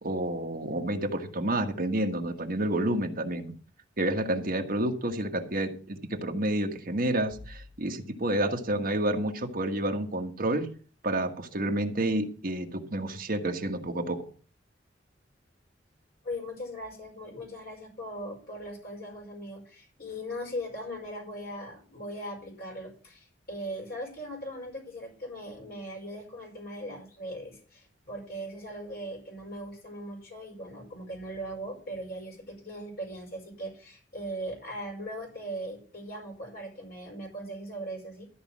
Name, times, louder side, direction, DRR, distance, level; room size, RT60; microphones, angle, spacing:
voice 1, 0.0-3.5 4.0-10.7 11.0-14.2, right 1 dB, 50° right, 3 dB, 1.6 m, -29 dB
voice 2, 16.2-38.3, equal, 55° left, 1 dB, 5.2 m, -39 dB
13.5 x 5.2 x 7.4 m, 0.40 s
head